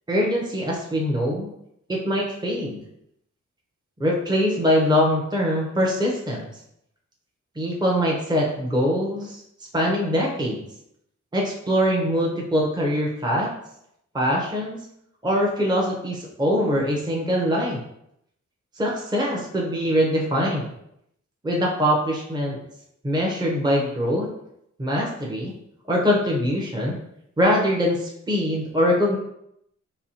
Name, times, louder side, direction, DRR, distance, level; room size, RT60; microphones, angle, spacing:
voice 1, 0.1-1.5 1.9-2.8 4.0-6.5 7.6-9.4 9.7-10.6 11.3-13.5 14.1-14.8 15.2-17.8 18.8-20.7 21.4-22.6 23.0-24.3 24.8-25.5 25.9-27.0 27.4-29.2, equal, 15° right, -2 dB, 0.7 m, -23 dB
4.2 x 2.3 x 2.7 m, 0.75 s
wide cardioid pair, 90°, 29 cm